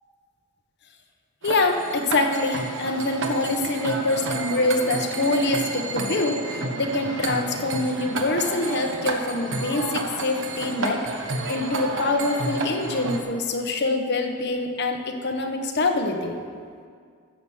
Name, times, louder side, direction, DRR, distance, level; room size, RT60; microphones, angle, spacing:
voice 1, 1.4-11.0 11.5-16.4, left 2 dB, 55° left, 3 dB, 1.2 m, -25 dB
sound 1, 1.4-13.2, right 3 dB, 60° right, 1.2 m, -30 dB
14.0 x 6.5 x 7.3 m, 2.1 s
head